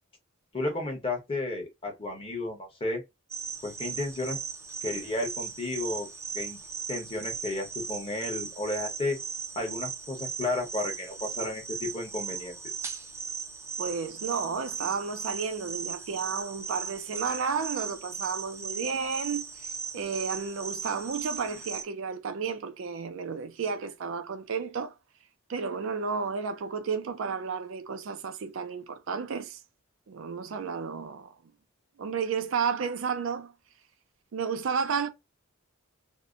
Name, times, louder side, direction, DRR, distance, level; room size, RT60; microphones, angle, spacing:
voice 1, 0.5-3.0 3.6-4.4 4.8-6.1 6.3-6.6 6.9-9.2 9.5-12.6, left 2 dB, 30° left, 1.0 m, -33 dB
sound 1, 3.3-21.8, right 6 dB, 15° right, 0.4 m, -38 dB
voice 2, 13.8-24.9 25.5-29.6 30.1-31.3 32.0-33.5 34.3-35.1, right 5 dB, 75° right, 0.4 m, -32 dB
2.7 x 2.1 x 2.4 m
head